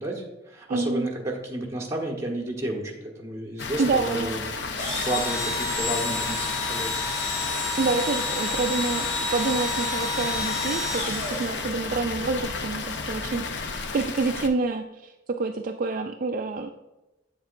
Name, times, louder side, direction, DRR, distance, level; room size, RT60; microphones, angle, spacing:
voice 1, 0.0-4.4 4.7-7.1, right 1 dB, 15° right, 0 dB, 1.2 m, -32 dB
voice 2, 0.7-1.1 3.8-4.3 7.8-16.7, right 3 dB, 45° right, 5 dB, 0.3 m, -28 dB
Water, 3.6-14.5, left 4 dB, 60° left, 0.6 m, -33 dB
Engine / Drill, 4.7-12.0, left 2 dB, 45° left, 2.5 m, -29 dB
8.1 x 7.2 x 2.5 m, 1.0 s
head